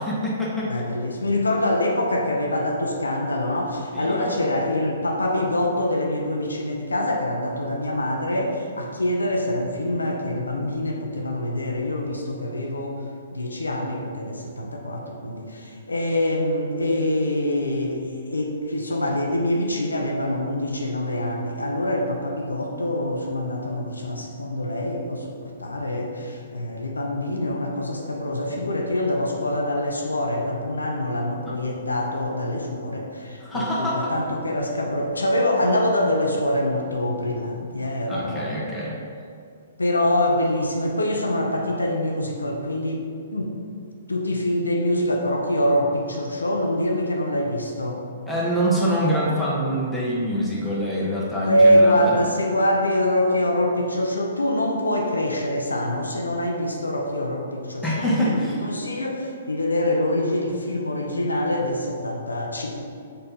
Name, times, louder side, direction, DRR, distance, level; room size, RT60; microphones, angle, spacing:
voice 1, 0.0-0.9 3.9-4.5 31.4-31.6 33.4-34.1 38.1-39.0 48.3-52.2 57.8-58.6, equal, 5° left, -7 dB, 1.4 m, -25 dB
voice 2, 0.7-13.0 13.3-38.6 39.8-43.5 44.1-48.0 51.4-62.9, left 1 dB, 85° left, 1 dB, 0.7 m, -25 dB
4.3 x 4.3 x 5.4 m, 2.3 s
figure-of-eight pair, 120°, 0 cm